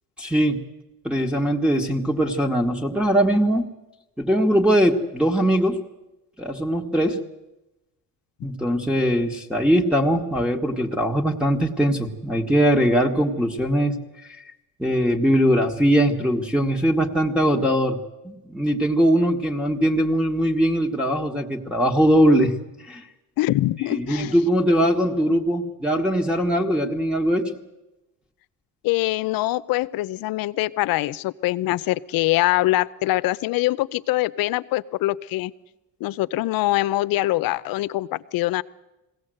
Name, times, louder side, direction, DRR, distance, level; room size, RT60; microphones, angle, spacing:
voice 1, 0.2-0.6 1.0-3.7 4.2-5.8 6.4-7.2 8.4-13.9 14.8-18.0 18.2-22.5 22.9-23.0 23.9-27.5, equal, 5° right, -2 dB, 1.6 m, -21 dB
voice 2, 23.4-24.3 28.8-35.5 36.0-38.6, left 17 dB, 75° left, 17 dB, 0.7 m, -23 dB
21.5 x 17.0 x 7.8 m, 0.98 s
cardioid pair, 115°, 36 cm